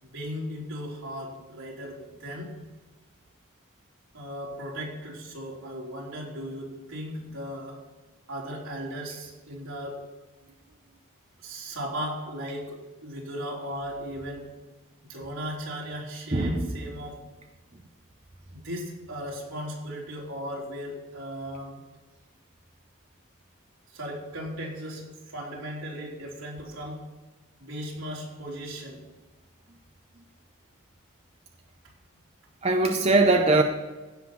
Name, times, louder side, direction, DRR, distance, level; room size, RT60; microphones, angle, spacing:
voice 1, 0.0-2.5 4.1-7.8 8.3-10.0 10.4-10.5 10.9-11.0 11.4-14.5 15.1-17.2 18.5-21.8 23.9-27.0 27.6-29.0, equal, 80° right, -3 dB, 3.5 m, -37 dB
voice 2, 32.6-33.6, right 2 dB, 30° right, 4 dB, 0.7 m, -20 dB
16.0 x 5.7 x 6.1 m, 1.2 s
head